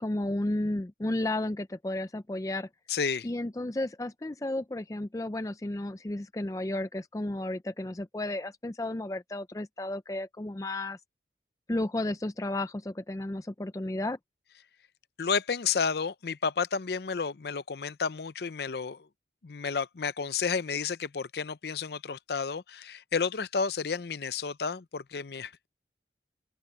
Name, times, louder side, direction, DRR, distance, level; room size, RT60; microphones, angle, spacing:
voice 1, 0.0-2.7 3.2-11.0 11.7-14.2, left 1 dB, 20° left, 0.4 m, -33 dB
voice 2, 2.9-3.3 15.2-19.1 19.4-25.7, left 5 dB, 65° left, 0.6 m, -31 dB
open air
head